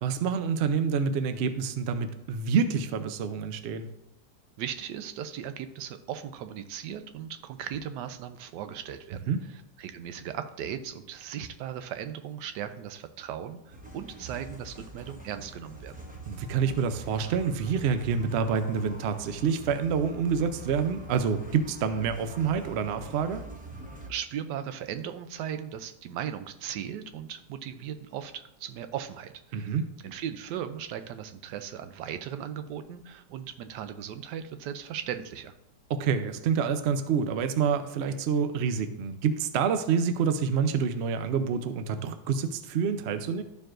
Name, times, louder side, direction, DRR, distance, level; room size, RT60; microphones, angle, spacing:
voice 1, 0.0-3.9 9.3-9.4 16.3-23.4 29.5-29.9 35.9-43.4, right 6 dB, 65° right, 9 dB, 0.6 m, -27 dB
voice 2, 4.6-15.9 24.1-29.7 30.0-35.5, right 9 dB, 85° right, 10 dB, 1.2 m, -37 dB
sound 1, 13.7-24.1, right 1 dB, 10° right, 0.6 m, -44 dB
13.0 x 4.6 x 2.5 m, 0.85 s
omnidirectional pair, 1.8 m